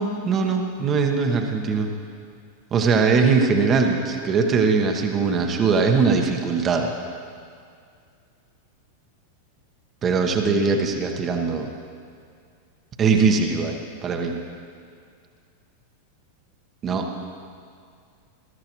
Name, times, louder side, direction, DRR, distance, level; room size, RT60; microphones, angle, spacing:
voice 1, 0.0-1.9 2.7-6.9 10.0-11.7 13.0-14.3 16.8-17.1, right 5 dB, 25° right, 3 dB, 1.2 m, -21 dB
20.5 x 13.0 x 3.1 m, 2.2 s
figure-of-eight pair, 90°, 0 cm